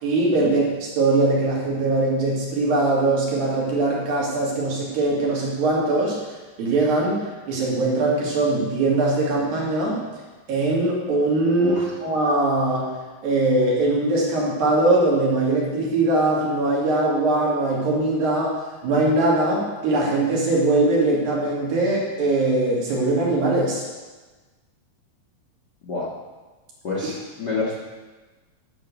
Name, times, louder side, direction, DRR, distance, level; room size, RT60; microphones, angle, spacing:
voice 1, 0.0-6.2 6.6-10.0 10.5-12.9 13.2-23.8, right 2 dB, 85° right, -4 dB, 4.1 m, -21 dB
voice 2, 11.6-11.9 25.8-26.1 26.8-27.8, left 3 dB, 75° left, -4 dB, 0.9 m, -27 dB
11.5 x 5.2 x 6.9 m, 1.3 s
omnidirectional pair, 4.0 m